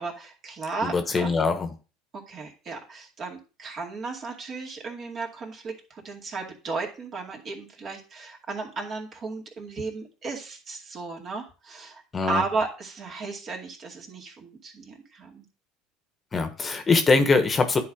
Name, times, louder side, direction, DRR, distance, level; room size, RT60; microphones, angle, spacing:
voice 1, 0.0-1.3 2.1-15.5, right 3 dB, 45° right, 0 dB, 2.3 m, -34 dB
voice 2, 0.8-1.7 12.1-12.4 16.3-17.8, left 4 dB, 30° left, 7 dB, 1.2 m, -22 dB
10.0 x 4.0 x 3.6 m, 0.34 s
hypercardioid pair, 80°, 0 cm